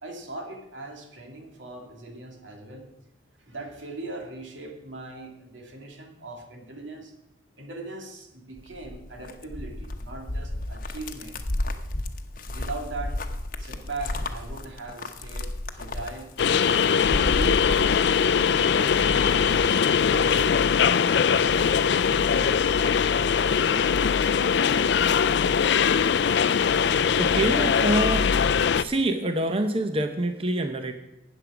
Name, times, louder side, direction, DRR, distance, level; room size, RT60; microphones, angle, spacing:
voice 1, 0.0-2.8 3.4-7.1 7.6-11.5 12.5-13.2 13.6-16.3 17.0-22.0, right 2 dB, 85° right, 2 dB, 2.4 m, -40 dB
sound 1, 8.6-18.5 18.8-19.7, left 1 dB, 45° left, 0.9 m, -33 dB
sound 2, 16.4-28.8, left 7 dB, 65° left, 0.4 m, -21 dB
voice 2, 27.2-28.3 28.7-30.9, right 1 dB, 30° right, 7 dB, 0.7 m, -26 dB
13.0 x 9.2 x 4.9 m, 0.95 s
head